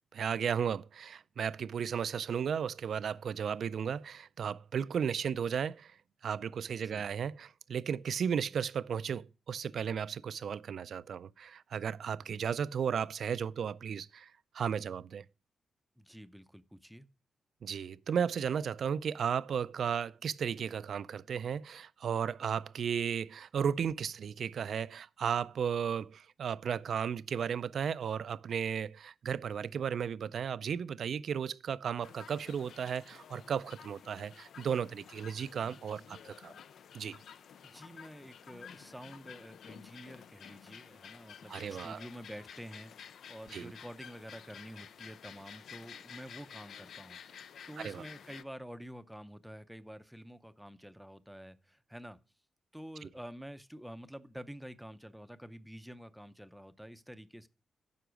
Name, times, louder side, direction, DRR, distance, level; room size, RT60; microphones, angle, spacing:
voice 1, 0.1-6.0 6.2-15.2 17.6-36.5 36.9-37.2 41.5-42.0 43.5-43.7 47.8-48.0 53.0-53.1, right 7 dB, 65° right, 0.3 m, -34 dB
voice 2, 16.0-17.1 37.6-52.2 52.7-57.5, equal, ahead, 0.5 m, -49 dB
sound 1, 32.0-48.4, left 8 dB, 75° left, 0.4 m, -52 dB
9.5 x 5.8 x 5.1 m
wide cardioid pair, 130°, 0 cm